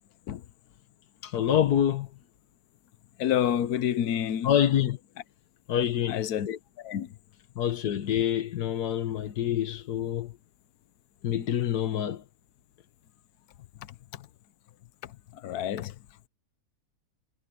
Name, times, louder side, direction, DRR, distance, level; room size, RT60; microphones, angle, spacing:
voice 1, 1.2-2.1 4.4-5.0 5.7-6.3 7.6-10.3 11.2-12.2, left 10 dB, 90° left, 1.6 m, -26 dB
voice 2, 3.2-4.5 6.1-7.1 14.1-14.2 15.0-15.9, left 10 dB, 75° left, 1.3 m, -29 dB
omnidirectional pair, 1.6 m